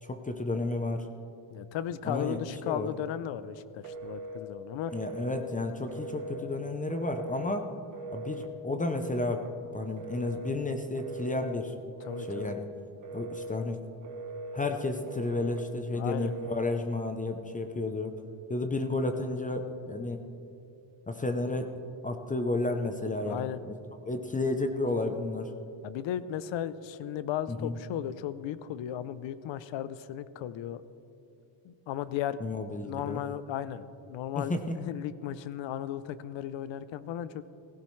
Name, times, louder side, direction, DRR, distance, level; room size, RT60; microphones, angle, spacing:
voice 1, 0.0-1.1 2.0-3.0 4.9-7.7 8.1-9.5 9.7-11.7 12.2-12.7 13.1-13.8 14.5-18.2 18.5-20.2 21.1-21.7 22.0-23.8 24.0-25.5 27.5-27.8 32.4-33.2 34.4-34.8, left 2 dB, 15° left, 6 dB, 0.6 m, -32 dB
voice 2, 1.5-4.9 12.1-12.5 15.9-16.3 23.2-23.6 25.8-30.8 31.6-32.4 32.8-37.4, left 11 dB, 70° left, 15 dB, 0.7 m, -35 dB
Telephone, 3.8-4.4 4.9-5.4 5.9-6.5 6.9-7.5 7.9-8.5 8.9-9.5 10.0-10.5 11.0-11.6 12.0-12.6 13.0-13.6 14.0-14.6 15.1-15.6 16.1-16.7, right 2 dB, 40° right, 1.2 m, -40 dB
16.0 x 16.0 x 3.2 m, 2.7 s
cardioid pair, 130°, 47 cm